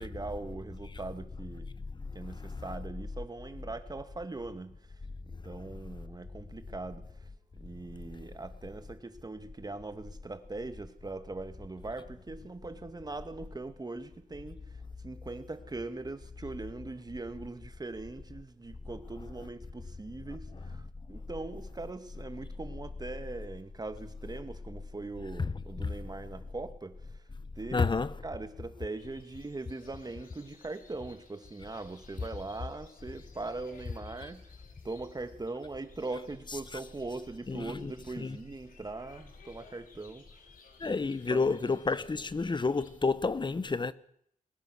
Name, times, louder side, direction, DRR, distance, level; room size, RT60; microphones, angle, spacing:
voice 1, 0.0-1.7 2.1-4.8 5.4-7.3 7.6-14.6 15.0-27.1 27.6-27.9 28.2-34.4 34.8-40.2 40.8-41.8, right 3 dB, 30° right, 2.0 m, -41 dB
voice 2, 2.0-2.6 21.1-21.2 25.4-25.9 27.7-28.1 34.2-34.3 36.7-36.8 37.5-38.4 40.8-43.9, left 4 dB, 35° left, 1.0 m, -31 dB
sound 1, 28.9-42.9, left 5 dB, 80° left, 3.9 m, -60 dB
21.5 x 19.0 x 6.3 m
cardioid pair, 70°, 14 cm